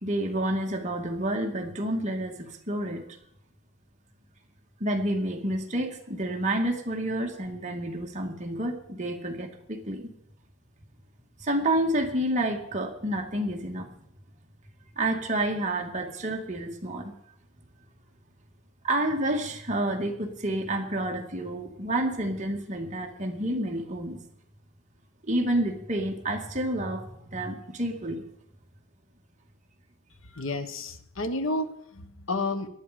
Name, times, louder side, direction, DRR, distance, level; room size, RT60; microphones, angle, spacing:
voice 1, 0.0-3.0 4.8-10.1 11.4-13.9 15.0-17.1 18.8-24.2 25.3-28.2, right 1 dB, 35° right, 2 dB, 2.1 m, -29 dB
voice 2, 30.3-32.7, left 2 dB, 80° left, 9 dB, 1.4 m, -31 dB
19.0 x 12.0 x 5.1 m, 0.74 s
head